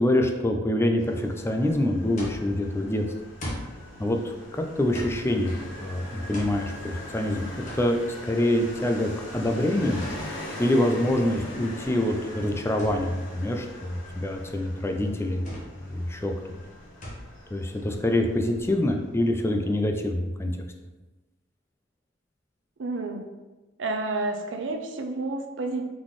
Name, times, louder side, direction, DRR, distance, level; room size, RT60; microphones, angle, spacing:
voice 1, 0.0-3.0 4.0-5.5 5.8-7.5 7.7-8.0 8.2-10.0 10.6-15.4 15.8-16.6 17.5-20.5, left 1 dB, 15° left, 4 dB, 0.4 m, -25 dB
Motorcycle, 1.0-19.8, left 1 dB, 75° left, 0.9 m, -42 dB
sound 1, 2.2-18.9, left 1 dB, 40° left, 1.1 m, -43 dB
voice 2, 22.8-23.2 23.8-26.0, right 2 dB, 70° right, 5 dB, 0.5 m, -30 dB
3.9 x 3.7 x 3.1 m, 1.2 s
head